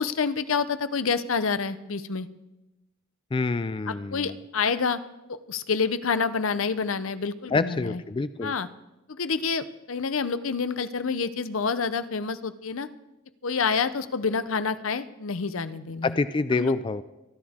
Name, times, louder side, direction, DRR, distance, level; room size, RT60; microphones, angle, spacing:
voice 1, 0.0-2.3 3.9-5.0 5.3-8.0 8.4-8.7 9.1-12.9 13.4-16.2 16.6-16.7, left 5 dB, 70° left, 13 dB, 0.7 m, -28 dB
voice 2, 3.3-4.3 7.5-8.5 16.0-17.0, left 3 dB, 25° left, 13 dB, 0.4 m, -27 dB
26.5 x 10.5 x 3.6 m, 0.98 s
head